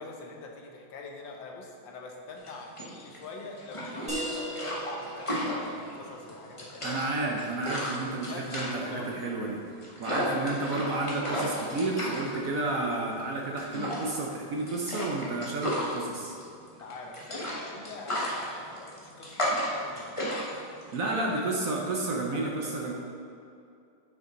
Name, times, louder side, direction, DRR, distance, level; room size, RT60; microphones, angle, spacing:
voice 1, 0.0-7.0 8.1-9.1 10.1-10.7 16.8-20.1 21.0-21.5 22.3-22.9, left 3 dB, 75° left, 1 dB, 1.6 m, -44 dB
sound 1, 2.4-22.1, equal, 20° left, 1.1 m, -34 dB
sound 2, 4.1-9.4, right 1 dB, 5° right, 1.5 m, -41 dB
voice 2, 6.8-16.4 20.9-22.9, right 2 dB, 60° right, -1 dB, 1.0 m, -31 dB
9.2 x 6.0 x 3.9 m, 2.5 s
omnidirectional pair, 2.0 m